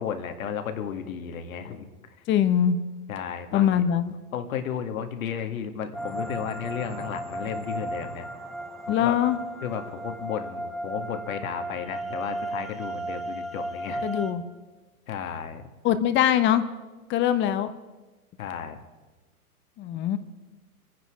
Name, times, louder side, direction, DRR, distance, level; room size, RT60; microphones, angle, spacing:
voice 1, 0.0-1.9 3.1-3.7 4.3-8.3 8.9-9.2 9.6-14.0 15.1-15.6 18.4-18.8, left 8 dB, 65° left, 7 dB, 2.0 m, -33 dB
voice 2, 2.3-2.8 3.5-4.1 8.9-9.4 14.0-14.4 15.8-16.6 17.1-17.7 19.8-20.2, left 10 dB, 25° left, 12 dB, 1.0 m, -22 dB
sound 1, 5.9-14.3, right 1 dB, ahead, 0.5 m, -35 dB
26.0 x 9.7 x 4.8 m, 1.2 s
hypercardioid pair, 120°, 44 cm